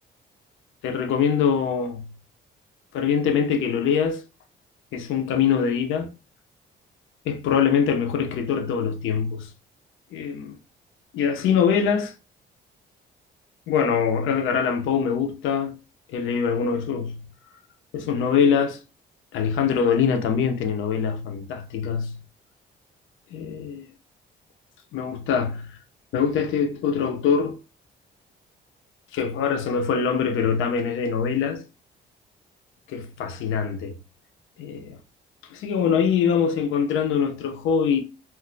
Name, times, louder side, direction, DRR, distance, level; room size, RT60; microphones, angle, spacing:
voice 1, 0.8-2.1 2.9-4.2 4.9-6.1 7.2-9.5 10.1-10.6 11.1-12.1 13.7-15.8 16.1-17.2 17.9-18.8 19.3-22.2 23.3-23.9 24.9-25.8 26.1-27.6 29.1-31.6 32.9-34.0 34.6-35.0 35.5-38.0, left 7 dB, 85° left, 0.7 m, -23 dB
2.5 x 2.2 x 3.8 m
cardioid pair, 90°, 20 cm